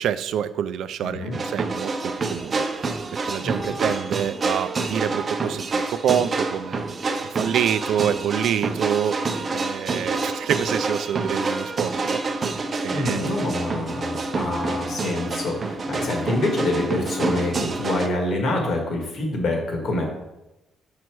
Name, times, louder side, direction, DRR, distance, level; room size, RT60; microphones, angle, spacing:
voice 1, 0.0-6.8 7.2-13.4, right 9 dB, 75° right, 14 dB, 0.4 m, -27 dB
voice 2, 1.0-1.4 3.4-3.7 12.9-20.0, left 2 dB, 55° left, 1 dB, 2.0 m, -26 dB
sound 1, 1.3-18.1, right 3 dB, 30° right, 0.6 m, -27 dB
6.1 x 5.6 x 4.7 m, 0.96 s
cardioid pair, 140°, 0 cm